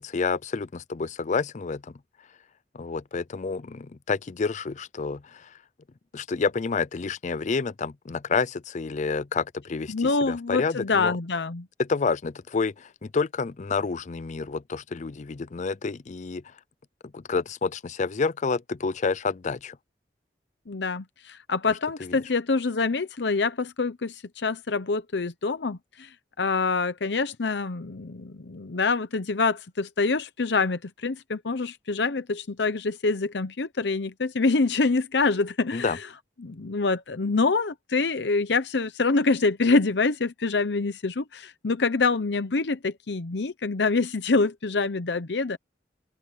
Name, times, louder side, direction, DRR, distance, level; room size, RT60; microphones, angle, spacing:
voice 1, 0.0-1.9 2.7-5.5 6.1-11.1 11.8-16.4 17.1-19.8 22.0-22.1 35.7-36.0, left 4 dB, 40° left, 0.5 m, -29 dB
voice 2, 9.9-11.7 20.7-36.1 36.4-45.6, left 3 dB, 70° left, 0.8 m, -26 dB
open air
head